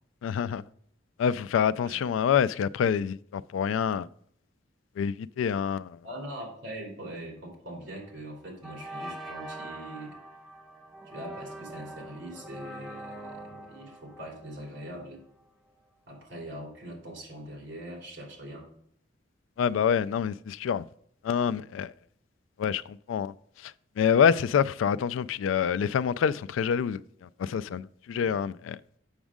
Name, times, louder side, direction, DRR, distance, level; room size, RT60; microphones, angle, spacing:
voice 1, 0.2-0.6 1.2-4.1 5.0-6.0 19.6-20.8 21.2-21.9 22.6-23.3 23.6-23.7 24.0-28.8, left 7 dB, 90° left, 0.3 m, -26 dB
voice 2, 6.0-10.2 11.0-15.2 16.1-18.7, right 1 dB, 70° right, 2.9 m, -42 dB
sound 1, 7.9-8.1 8.6-15.4, right 1 dB, ahead, 0.9 m, -43 dB
7.2 x 6.1 x 3.6 m
head